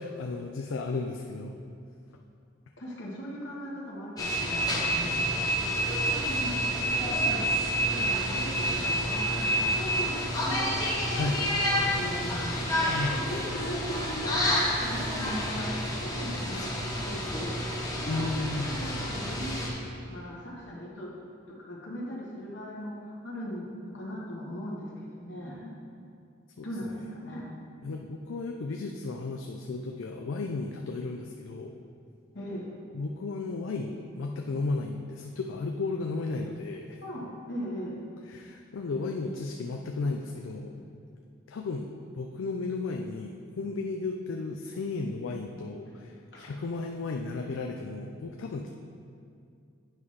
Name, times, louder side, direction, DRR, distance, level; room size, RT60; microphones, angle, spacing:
voice 1, 0.0-1.6 11.1-11.4 12.8-13.2 18.1-18.8 26.6-27.0 27.8-31.7 32.9-37.0 38.3-40.9 41.5-48.7, left 3 dB, 85° left, 2 dB, 0.4 m, -34 dB
voice 2, 2.8-6.6 7.0-7.5 7.9-17.6 17.9-18.3 18.6-19.6 20.1-21.1 21.5-25.7 26.6-27.4 32.3-32.7 37.0-38.0 46.3-46.5, equal, 65° left, -4 dB, 1.2 m, -39 dB
sound 1, 4.2-19.7, equal, 20° left, 0.9 m, -29 dB
9.0 x 3.2 x 5.5 m, 2.4 s
head